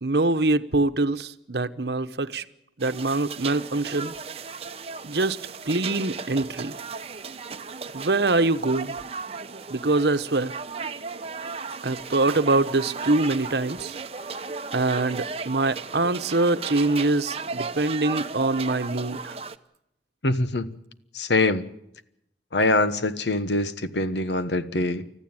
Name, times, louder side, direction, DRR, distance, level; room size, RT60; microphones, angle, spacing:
voice 1, 0.0-2.4 2.8-4.1 5.0-5.4 5.7-6.7 7.9-8.9 9.7-10.5 11.8-13.9 14.7-19.3, right 2 dB, 70° right, 1.0 m, -24 dB
sound 1, 2.8-19.6, right 5 dB, 35° right, 0.8 m, -35 dB
voice 2, 20.2-20.8 21.1-21.7 22.5-25.1, left 2 dB, 80° left, 1.2 m, -24 dB
30.0 x 14.5 x 9.0 m
head